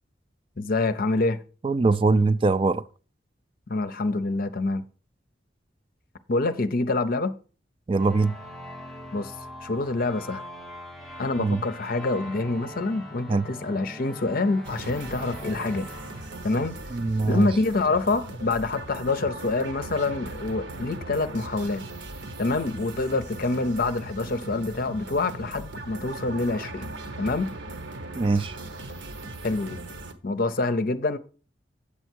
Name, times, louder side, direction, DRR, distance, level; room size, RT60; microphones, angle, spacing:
voice 1, 0.6-1.4 3.7-4.8 6.3-7.3 9.1-9.3 9.6-10.4 11.2-15.9 16.4-16.7 17.3-21.8 22.4-26.9 27.2-27.5 29.4-29.8 30.2-31.2, left 3 dB, 55° left, 0.7 m, -26 dB
voice 2, 1.6-2.8 7.9-8.4 11.4-11.6 13.3-13.5 16.9-17.5 28.2-28.6, right 3 dB, 30° right, 0.3 m, -22 dB
sound 1, 8.0-17.3, equal, ahead, 0.9 m, -42 dB
sound 2, 14.6-30.1, right 2 dB, 80° right, 1.1 m, -39 dB
8.6 x 7.0 x 4.5 m
head